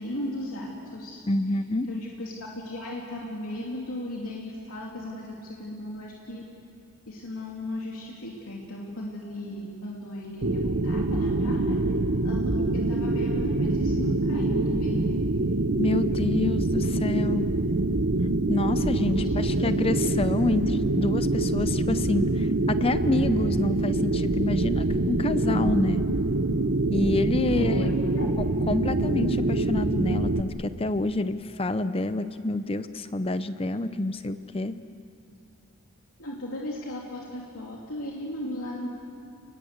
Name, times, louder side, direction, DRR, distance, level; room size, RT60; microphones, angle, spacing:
voice 1, 0.0-1.2 1.8-6.4 7.1-11.8 12.2-15.2 19.1-19.7 27.5-28.3 36.2-38.9, left 1 dB, 85° left, -2 dB, 2.8 m, -36 dB
voice 2, 1.3-1.9 15.8-17.5 18.5-26.0 26.9-27.9 28.7-34.7, left 2 dB, 25° left, 11 dB, 0.6 m, -27 dB
sound 1, 10.4-30.4, right 2 dB, 55° right, 0.9 m, -25 dB
30.0 x 20.5 x 8.0 m, 2.5 s
head